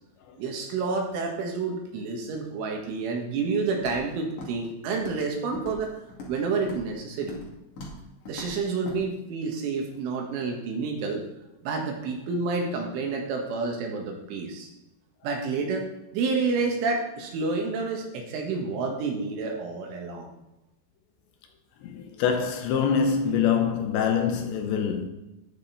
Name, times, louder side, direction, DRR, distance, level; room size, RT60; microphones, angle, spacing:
voice 1, 0.4-5.9 6.3-7.4 8.3-11.2 11.6-14.7 15.2-15.9 16.1-20.3, right 4 dB, 75° right, 4.1 m, -29 dB
Walk footsteps, 3.8-4.1 4.4-4.7 4.9-5.3 5.5-6.4 6.6-6.9 7.2-7.5 7.8-8.0 8.2-8.5 8.8-9.0, left 2 dB, 45° left, 2.4 m, -40 dB
voice 2, 21.8-25.1, left 7 dB, 75° left, 2.9 m, -25 dB
11.5 x 10.0 x 4.1 m
omnidirectional pair, 5.7 m